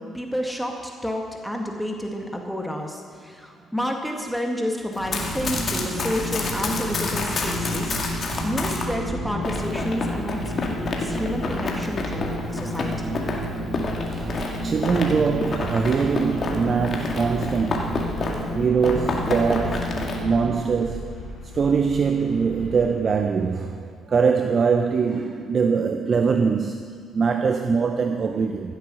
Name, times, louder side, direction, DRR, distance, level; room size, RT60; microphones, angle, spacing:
voice 1, 0.0-8.0 8.4-13.2, equal, 5° left, 2.0 m, -30 dB
Run, 4.9-8.9 9.4-18.5 18.8-20.2, left 3 dB, 45° left, 2.1 m, -30 dB
sound 1, 5.0-20.6, equal, 80° right, 2.5 m, -31 dB
Bird vocalization bird call bird song, 13.9-22.9, left 2 dB, 65° left, 2.8 m, -40 dB
voice 2, 14.0-18.2 18.5-21.2 21.5-28.7, right 5 dB, 45° right, 0.7 m, -23 dB
15.5 x 8.3 x 6.3 m
hypercardioid pair, 45°, 0 cm